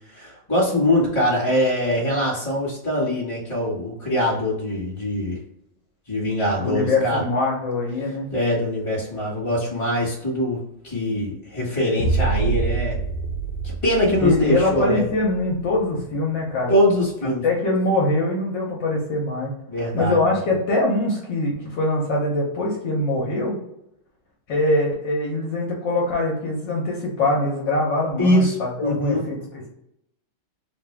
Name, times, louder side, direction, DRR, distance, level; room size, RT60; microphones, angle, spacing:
voice 1, 0.1-5.4 6.1-7.2 8.3-13.0 13.6-15.0 16.7-17.4 19.7-20.2 28.2-29.2, left 1 dB, 15° left, -4 dB, 1.2 m, -22 dB
voice 2, 6.6-8.3 14.2-16.7 17.4-19.5 19.9-23.6 24.5-29.7, left 2 dB, 65° left, -3 dB, 1.3 m, -23 dB
sound 1, 12.0-16.0, right 4 dB, 85° left, 1.5 m, -26 dB
3.5 x 2.6 x 3.2 m, 0.80 s
omnidirectional pair, 2.3 m